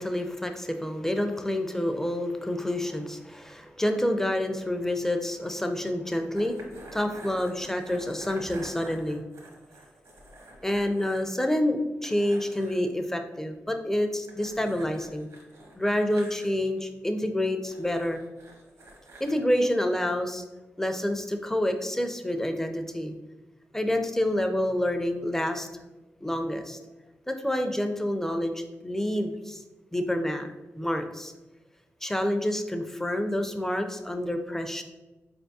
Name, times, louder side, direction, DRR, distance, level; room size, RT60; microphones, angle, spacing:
voice 1, 0.0-6.7 6.9-9.2 10.6-15.3 15.8-18.2 19.2-20.4 20.8-23.1 23.7-25.7 26.2-26.8 27.3-29.6 29.9-30.5 30.7-31.3 32.0-34.8, left 1 dB, 5° left, 6 dB, 0.4 m, -28 dB
sound 1, 6.3-11.3 11.6-11.7 12.0-12.8 14.3-16.5 17.6-19.4, right 1 dB, 65° right, 1.0 m, -48 dB
4.1 x 3.4 x 2.7 m, 1.1 s
cardioid pair, 80°, 6 cm